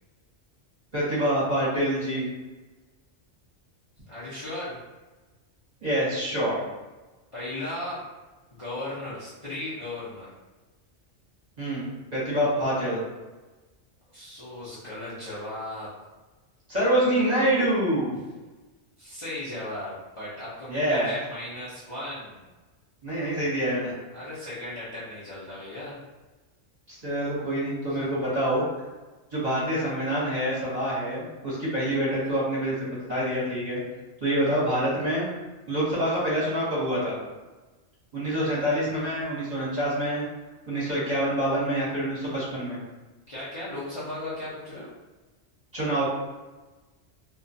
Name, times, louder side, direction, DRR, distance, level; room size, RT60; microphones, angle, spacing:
voice 1, 0.9-2.3 5.8-6.6 11.6-13.0 16.7-18.2 20.7-21.1 23.0-23.9 26.9-28.6 29.3-33.8 34.2-35.3 35.7-37.2 38.1-40.3 40.7-42.8 45.7-46.0, right 1 dB, 40° right, -9 dB, 0.9 m, -26 dB
voice 2, 4.1-4.8 7.3-8.0 8.5-10.3 14.1-15.9 19.0-22.4 24.1-26.0 43.3-44.9, left 1 dB, 35° left, -11 dB, 0.5 m, -36 dB
2.3 x 2.2 x 2.6 m, 1.2 s
omnidirectional pair, 1.2 m